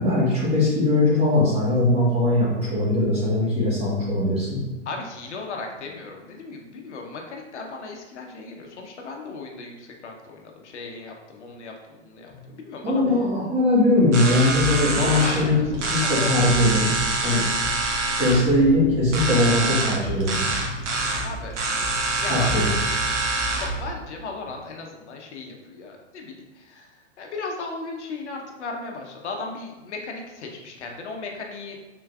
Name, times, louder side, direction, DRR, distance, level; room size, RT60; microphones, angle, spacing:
voice 1, 0.0-4.6 12.3-12.4 12.8-15.6 15.9-16.9 17.2-17.4 18.1-20.5 22.3-22.7, left 1 dB, 15° right, -7 dB, 1.5 m, -20 dB
voice 2, 4.9-13.0 14.9-16.5 21.2-21.5 22.2-22.5 23.5-26.9 27.2-31.8, left 3 dB, 70° left, 1 dB, 0.8 m, -36 dB
sound 1, 14.1-23.8, right 2 dB, 70° right, 1.0 m, -26 dB
4.6 x 3.8 x 2.3 m, 1.1 s
hypercardioid pair, 125°, 36 cm